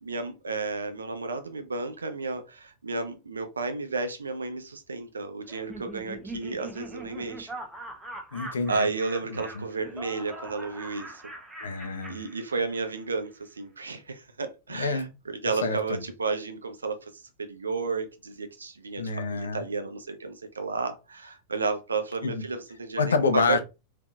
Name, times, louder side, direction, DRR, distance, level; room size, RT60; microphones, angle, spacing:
voice 1, 0.0-7.5 8.7-11.2 12.1-23.6, right 4 dB, 75° right, 0.6 m, -32 dB
Laughter, 5.5-13.0, right 2 dB, 10° right, 0.8 m, -42 dB
voice 2, 8.3-8.9 9.3-9.6 11.6-12.2 14.8-15.1 15.6-16.0 19.0-19.7 22.2-22.4 23.0-23.6, left 4 dB, 70° left, 0.6 m, -27 dB
3.7 x 2.8 x 2.4 m
figure-of-eight pair, 90°, 0 cm